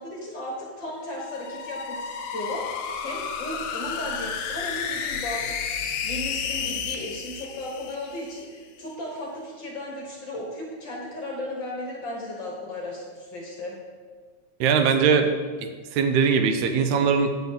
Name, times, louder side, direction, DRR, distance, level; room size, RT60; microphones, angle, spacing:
voice 1, 0.0-13.8, left 1 dB, 50° left, -2 dB, 1.6 m, -35 dB
sound 1, 1.0-8.5, left 6 dB, 75° left, 1.5 m, -32 dB
voice 2, 14.6-15.3 15.9-17.3, right 6 dB, 85° right, 7 dB, 2.0 m, -20 dB
9.5 x 4.1 x 7.3 m, 1.5 s
omnidirectional pair, 3.4 m